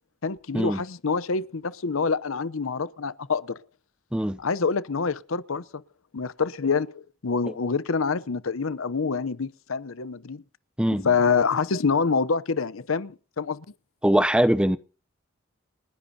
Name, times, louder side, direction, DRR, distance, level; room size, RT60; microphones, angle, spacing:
voice 1, 0.2-3.6 4.4-5.8 6.1-10.4 10.9-13.6, left 5 dB, 70° left, 0.7 m, -26 dB
voice 2, 14.0-14.8, right 1 dB, 5° right, 0.6 m, -22 dB
30.0 x 10.5 x 2.8 m
head